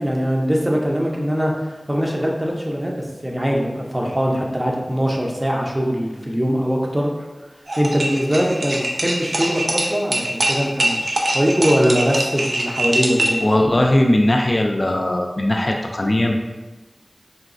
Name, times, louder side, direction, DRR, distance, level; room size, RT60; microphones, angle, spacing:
voice 1, 0.0-1.5 1.9-7.3 7.8-13.4, equal, 25° right, -1 dB, 0.6 m, -21 dB
sound 1, 7.7-13.5, right 1 dB, 80° right, 0.4 m, -23 dB
voice 2, 13.4-16.3, left 1 dB, 55° left, 2 dB, 0.3 m, -18 dB
3.9 x 2.3 x 2.5 m, 1.1 s
wide cardioid pair, 40°, 0 cm